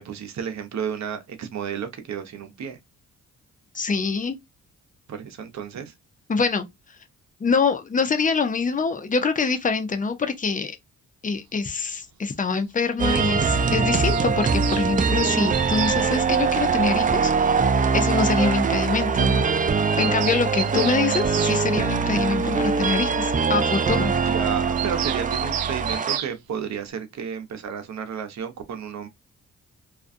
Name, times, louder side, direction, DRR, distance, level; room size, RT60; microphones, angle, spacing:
voice 1, 0.0-2.8 5.1-5.9 24.3-29.1, right 7 dB, 55° right, 0.8 m, -32 dB
voice 2, 3.7-4.3 6.3-6.7 7.4-10.8 11.2-17.3 17.9-19.4 20.0-24.1, left 4 dB, 25° left, 0.6 m, -25 dB
sound 1, 13.0-26.2, right 5 dB, 25° right, 0.4 m, -22 dB
Bird vocalization bird call bird song, 13.8-16.0 17.4-17.5 17.8-17.9 18.1-18.2 18.5-18.6 18.8-18.9 19.2-19.3 19.6-21.6 24.8-26.3, right 10 dB, 90° right, 0.5 m, -32 dB
2.4 x 2.2 x 2.5 m
cardioid pair, 65°, 33 cm